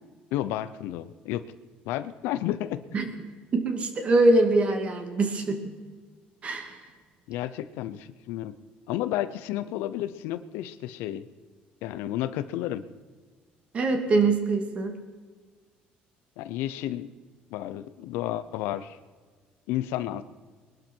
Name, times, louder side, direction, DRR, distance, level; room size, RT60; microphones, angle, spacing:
voice 1, 0.3-1.5 1.9-2.8 7.3-8.5 8.9-11.2 11.8-12.8 16.4-17.1 17.5-19.0 19.7-20.2, left 13 dB, 90° left, 13 dB, 0.8 m, -31 dB
voice 2, 3.5-5.7 6.4-6.8 13.7-15.0, right 2 dB, 35° right, 5 dB, 2.3 m, -23 dB
21.5 x 12.0 x 4.6 m, 1.5 s
cardioid pair, 135°, 4 cm